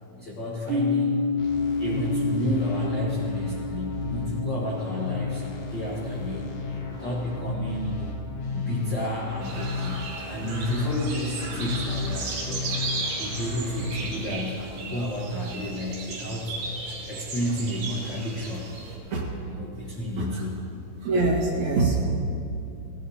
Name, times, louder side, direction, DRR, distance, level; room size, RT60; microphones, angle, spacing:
voice 1, 0.2-1.2 1.8-8.1 8.5-12.7 13.2-16.5 17.1-18.7 19.4-20.7, equal, 70° left, -4 dB, 1.0 m, -31 dB
sound 1, 0.7-8.5, left 3 dB, 90° right, 3.2 m, -31 dB
sound 2, 1.4-14.3, left 4 dB, 55° left, 1.8 m, -34 dB
sound 3, 9.4-19.0, right 3 dB, 70° right, 3.7 m, -35 dB
voice 2, 21.0-22.0, right 3 dB, 55° right, -3 dB, 2.7 m, -23 dB
17.5 x 15.5 x 2.8 m, 2.6 s
omnidirectional pair, 4.4 m